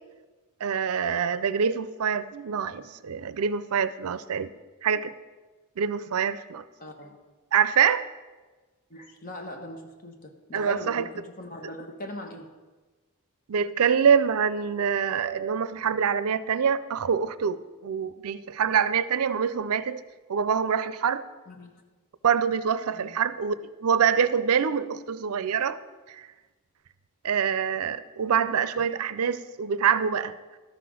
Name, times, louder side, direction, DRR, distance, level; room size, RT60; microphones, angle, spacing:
voice 1, 0.6-4.5 4.8-5.1 5.8-6.6 7.5-8.1 10.5-11.0 13.5-20.0 20.3-21.2 22.2-25.8 27.2-30.3, right 7 dB, 75° right, 15 dB, 0.5 m, -25 dB
voice 2, 6.8-7.2 8.9-12.5 21.5-21.8 22.9-23.2, equal, 40° left, 4 dB, 1.2 m, -41 dB
12.5 x 6.0 x 6.2 m, 1.3 s
head